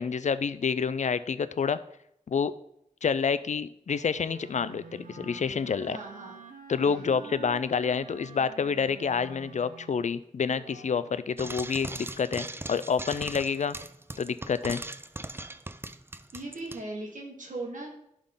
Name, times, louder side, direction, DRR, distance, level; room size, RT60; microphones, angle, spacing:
voice 1, 0.0-1.8 2.3-2.5 3.0-6.0 6.7-13.8 14.2-14.8, left 6 dB, 60° left, 15 dB, 0.4 m, -28 dB
Wind instrument woodwind instrument, 3.9-11.3, right 5 dB, 90° right, 0.7 m, -48 dB
voice 2, 5.9-6.4 6.8-7.3 16.3-17.9, right 2 dB, 75° right, -2 dB, 1.4 m, -39 dB
Frying (food), 11.4-16.8, right 2 dB, 15° right, 0.4 m, -39 dB
11.0 x 3.7 x 3.7 m, 0.76 s
cardioid pair, 45°, 14 cm